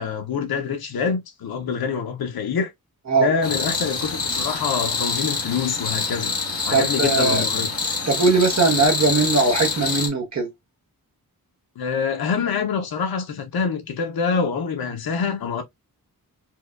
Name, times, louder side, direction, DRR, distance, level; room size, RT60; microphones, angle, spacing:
voice 1, 0.0-2.7 3.2-6.3 6.7-7.7 11.8-15.6, left 6 dB, 85° left, 0.7 m, -25 dB
sound 1, 3.4-10.1, left 4 dB, 40° left, 1.1 m, -26 dB
voice 2, 6.7-7.4 8.1-10.5, right 4 dB, 50° right, 0.9 m, -20 dB
4.6 x 2.2 x 2.3 m
wide cardioid pair, 160°, 36 cm